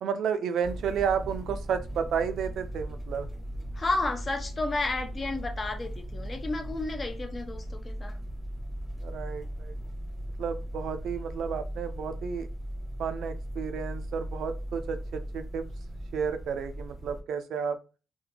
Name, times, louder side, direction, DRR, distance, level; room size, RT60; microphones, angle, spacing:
voice 1, 0.0-3.3 9.0-9.7 10.4-12.5 13.0-15.7 16.1-17.8, right 7 dB, 75° right, 9 dB, 0.3 m, -32 dB
sound 1, 0.6-17.2, equal, 10° left, 1.1 m, -38 dB
voice 2, 3.7-8.2, left 2 dB, 30° left, 5 dB, 0.5 m, -32 dB
2.4 x 2.2 x 2.8 m, 0.33 s
cardioid pair, 110°, 0 cm